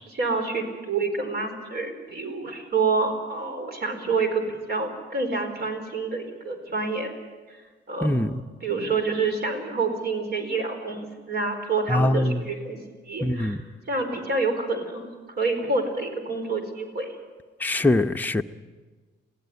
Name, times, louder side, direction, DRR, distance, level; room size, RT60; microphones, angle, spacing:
voice 1, 0.0-7.1 7.5-7.6 7.9-8.1 8.6-12.8 13.1-13.6 13.9-17.1, right 3 dB, 55° right, 4.6 m, -28 dB
voice 2, 8.0-8.4 11.9-12.5 13.2-13.6 17.6-18.4, left 1 dB, 10° left, 0.8 m, -23 dB
22.0 x 16.0 x 9.4 m
cardioid pair, 90°, 20 cm